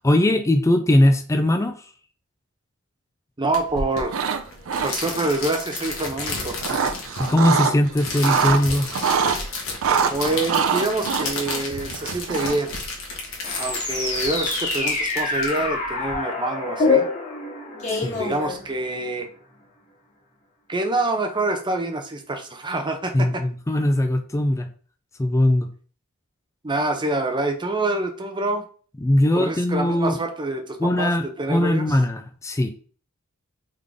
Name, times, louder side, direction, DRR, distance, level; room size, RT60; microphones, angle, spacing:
voice 1, 0.0-1.8 7.2-8.9 17.9-18.2 23.1-24.7 25.2-25.7 29.0-30.2 30.8-32.7, left 1 dB, 15° left, 6 dB, 0.4 m, -20 dB
voice 2, 3.4-4.2 4.8-7.0 10.1-12.7 13.6-17.0 18.1-19.3 20.7-23.4 26.6-28.6 29.3-31.9, right 2 dB, 20° right, 5 dB, 0.6 m, -26 dB
sound 1, 3.5-16.1, left 3 dB, 65° left, 1.3 m, -33 dB
sound 2, 4.0-4.4 4.7-5.3 6.2-7.7 8.1-9.4 9.8-12.7, right 6 dB, 65° right, 0.5 m, -24 dB
sound 3, 13.4-19.1, left 3 dB, 35° left, 1.3 m, -26 dB
3.7 x 3.6 x 3.5 m, 0.42 s
head